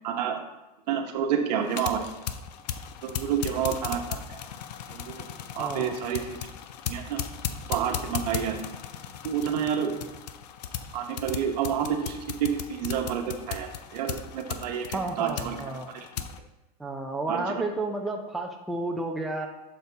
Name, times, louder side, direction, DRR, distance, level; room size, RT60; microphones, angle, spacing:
voice 1, 0.0-0.4 0.9-2.0 3.0-4.4 4.9-5.2 5.6-6.4 6.9-7.2 7.7-8.6 9.2-10.0 10.9-15.6 15.9-16.1 17.3-17.6, right 8 dB, 75° right, 4 dB, 1.0 m, -29 dB
sound 1, 1.6-16.4, left 9 dB, 85° left, 0.5 m, -37 dB
voice 2, 5.6-5.9 14.9-15.9 16.8-19.5, right 2 dB, ahead, 1 dB, 0.5 m, -31 dB
6.8 x 4.3 x 3.9 m, 1.0 s
supercardioid pair, 135°, 21 cm